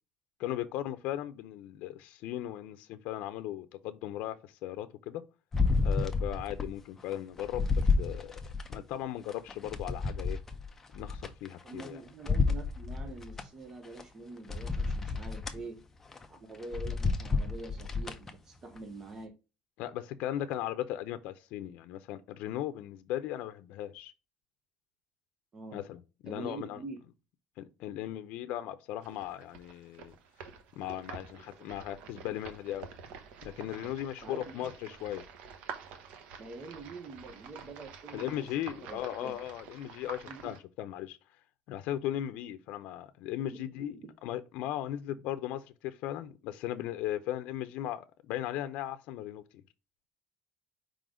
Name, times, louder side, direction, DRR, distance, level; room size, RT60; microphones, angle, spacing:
voice 1, 0.4-5.2 5.8-8.4 8.7-10.4 10.9-12.0 19.8-24.1 25.7-26.8 27.6-30.1 30.8-32.9 33.4-35.2 38.1-41.2 41.7-49.4, left 12 dB, 75° left, 0.6 m, -37 dB
sound 1, 5.5-6.7 7.1-8.8 9.3-11.9 12.2-13.4 14.0-14.1 14.5-15.6 16.1-16.3 16.6-18.3 18.8-18.9, left 4 dB, 15° left, 0.6 m, -30 dB
voice 2, 11.6-15.8 16.3-19.3 25.5-25.8 26.3-27.0 34.2-34.7 36.4-38.5 38.8-39.3 40.3-40.5 43.5-44.1, right 3 dB, 25° right, 0.8 m, -45 dB
sound 2, 29.0-40.6, right 6 dB, 70° right, 0.9 m, -48 dB
4.9 x 3.9 x 4.9 m
cardioid pair, 175°, 2 cm